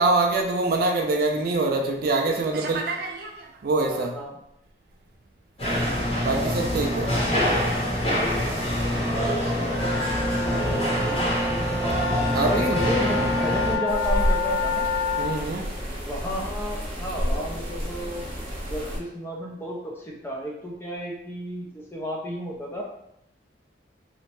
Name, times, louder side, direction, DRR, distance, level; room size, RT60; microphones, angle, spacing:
voice 1, 0.0-4.2 6.2-7.2 10.5-10.9 12.3-12.6 15.2-15.7, right 2 dB, 50° right, 3 dB, 0.3 m, -25 dB
voice 2, 3.8-4.3 6.2-6.6 9.2-9.9 10.6-11.6 12.4-14.9 16.0-18.3 18.7-22.8, equal, 15° left, -2 dB, 0.5 m, -32 dB
sound 1, 5.6-13.8, left 1 dB, 30° left, 0.8 m, -25 dB
sound 2, 9.7-15.3, left 3 dB, 85° left, 0.7 m, -28 dB
sound 3, 13.9-19.0, equal, 30° right, 0.7 m, -30 dB
2.9 x 2.1 x 2.9 m, 0.78 s
head